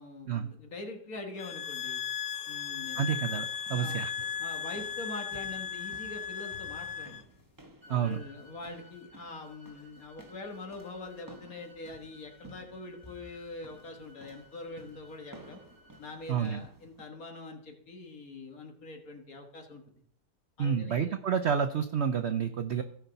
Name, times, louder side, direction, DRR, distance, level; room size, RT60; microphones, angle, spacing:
voice 1, 0.0-2.0 2.5-3.1 3.7-4.0 4.4-7.3 7.9-15.6 16.0-19.8 20.6-21.2, left 2 dB, 60° left, 3 dB, 1.9 m, -44 dB
sound 1, 1.4-7.2, left 8 dB, 85° left, 1.3 m, -36 dB
sound 2, 2.7-17.0, right 1 dB, 15° right, 1.0 m, -55 dB
voice 2, 3.0-4.1 7.9-8.2 16.3-16.6 20.6-22.8, right 7 dB, 70° right, 9 dB, 0.6 m, -29 dB
sound 3, 7.8-16.1, left 2 dB, 30° right, 3.0 m, -59 dB
17.0 x 5.7 x 4.0 m, 0.68 s
omnidirectional pair, 1.8 m